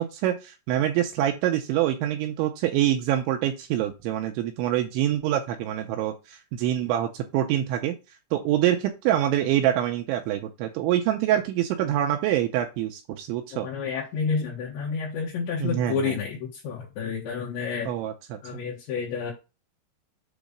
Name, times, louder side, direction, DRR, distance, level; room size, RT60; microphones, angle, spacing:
voice 1, 0.0-8.0 8.3-13.7 15.6-16.2 17.9-18.4, right 12 dB, 80° right, 4 dB, 2.8 m, -25 dB
voice 2, 13.5-17.9 18.4-19.3, left 5 dB, 70° left, -3 dB, 3.2 m, -30 dB
8.1 x 3.1 x 5.1 m, 0.28 s
omnidirectional pair, 5.8 m